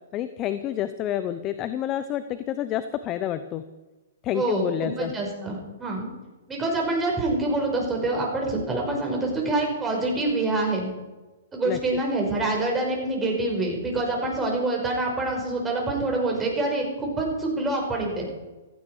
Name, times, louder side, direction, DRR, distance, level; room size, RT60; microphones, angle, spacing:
voice 1, 0.1-3.7 4.2-5.1 11.6-12.0, left 11 dB, 30° left, 12 dB, 0.8 m, -29 dB
voice 2, 4.3-6.1 6.5-10.9 11.5-18.3, right 2 dB, 15° right, 0 dB, 5.3 m, -26 dB
15.5 x 14.5 x 4.9 m, 1.1 s
hypercardioid pair, 125°, 0 cm